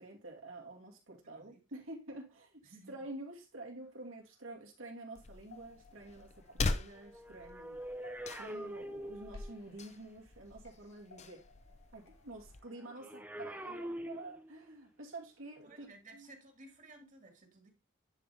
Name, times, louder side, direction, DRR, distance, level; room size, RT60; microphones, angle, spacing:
voice 1, 0.0-7.8 8.4-11.4 11.9-16.3, right 2 dB, 85° right, -1 dB, 2.5 m, -49 dB
voice 2, 2.6-3.1 15.6-17.7, right 2 dB, 40° right, 4 dB, 1.8 m, -56 dB
sound 1, 3.8-17.1, left 4 dB, 65° left, 3.2 m, -66 dB
sound 2, 5.1-12.6, left 3 dB, 35° left, 0.6 m, -42 dB
sound 3, 7.0-9.7 12.8-14.8 15.6-15.8, right 1 dB, 10° right, 0.6 m, -44 dB
9.8 x 4.2 x 3.3 m, 0.28 s
head